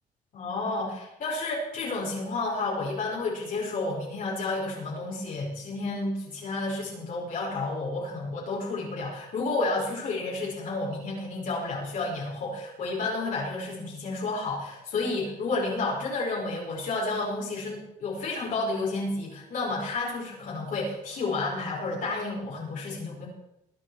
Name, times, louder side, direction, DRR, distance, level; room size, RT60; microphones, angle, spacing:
voice 1, 0.3-23.3, left 3 dB, 55° left, -5 dB, 5.4 m, -31 dB
22.5 x 9.3 x 4.9 m, 0.86 s
cardioid pair, 110°, 17 cm